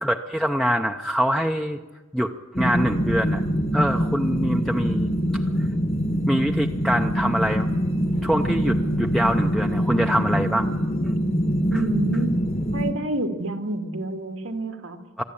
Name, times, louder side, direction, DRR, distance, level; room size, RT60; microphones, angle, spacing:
voice 1, 0.0-1.8 2.1-2.3 2.6-3.4 3.7-5.4 6.3-7.7 8.2-10.7 11.0-11.2 11.7-11.8 15.2-15.3, equal, ahead, 3 dB, 0.6 m, -24 dB
sound 1, 2.5-12.9, equal, 30° left, 1.3 m, -24 dB
voice 2, 11.7-12.3 12.7-15.0, right 2 dB, 90° right, 4 dB, 2.1 m, -28 dB
24.0 x 13.0 x 8.5 m, 1.3 s
head